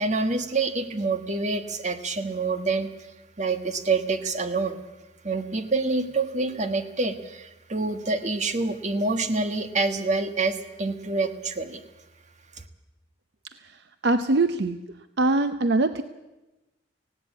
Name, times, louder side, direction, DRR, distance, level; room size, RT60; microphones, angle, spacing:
voice 1, 0.0-2.9 3.4-4.8 5.2-11.8, right 3 dB, 40° right, 8 dB, 1.5 m, -27 dB
voice 2, 13.6-14.8 15.2-16.0, right 2 dB, 60° right, 10 dB, 0.7 m, -23 dB
18.5 x 16.5 x 8.5 m, 1.0 s
head